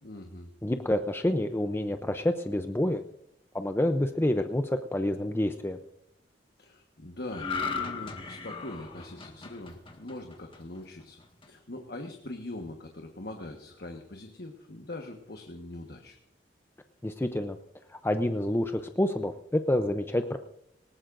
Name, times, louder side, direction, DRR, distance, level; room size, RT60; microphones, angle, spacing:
voice 1, 0.0-0.5 6.6-11.2 11.5-16.2, left 2 dB, 60° left, 4 dB, 1.3 m, -42 dB
voice 2, 0.6-3.0 3.5-5.8 17.0-17.6 17.9-20.4, left 1 dB, 15° left, 7 dB, 0.5 m, -28 dB
sound 1, 7.3-10.8 11.2-11.4, left 4 dB, 30° left, 1.6 m, -36 dB
19.0 x 19.0 x 2.6 m, 0.78 s
head